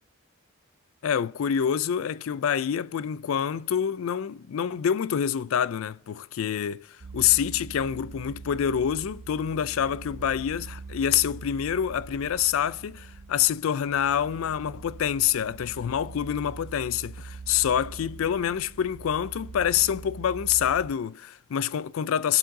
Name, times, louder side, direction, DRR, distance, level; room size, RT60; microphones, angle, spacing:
voice 1, 1.0-22.4, left 9 dB, 75° left, 0.4 m, -26 dB
sound 1, 7.0-20.9, right 4 dB, 55° right, 0.6 m, -43 dB
21.5 x 7.6 x 2.7 m
head